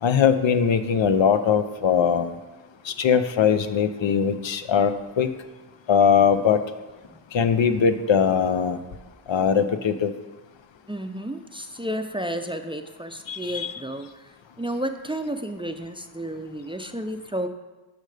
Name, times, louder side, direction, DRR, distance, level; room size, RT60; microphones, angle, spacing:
voice 1, 0.0-2.4 2.8-5.3 5.9-6.6 7.3-8.8 9.3-10.1 13.3-13.7, left 7 dB, 75° left, 10 dB, 0.6 m, -21 dB
voice 2, 10.9-14.3 14.6-17.5, right 1 dB, 10° right, 7 dB, 0.4 m, -32 dB
10.0 x 6.5 x 3.3 m, 1.2 s
wide cardioid pair, 70°, 46 cm